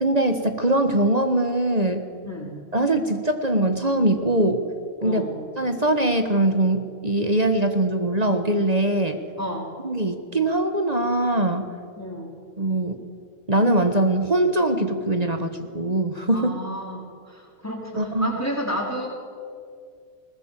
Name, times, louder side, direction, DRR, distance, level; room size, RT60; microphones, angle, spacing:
voice 1, 0.0-2.0 2.7-4.6 5.0-5.2 5.6-9.2 9.8-11.7 12.6-13.0 13.5-16.5 18.0-18.3, right 1 dB, 30° right, 6 dB, 1.4 m, -22 dB
voice 2, 2.2-2.6 5.0-5.4 9.4-9.7 11.9-12.3 16.3-19.1, equal, 10° left, -2 dB, 4.4 m, -31 dB
20.5 x 19.5 x 7.6 m, 2.2 s
omnidirectional pair, 1.3 m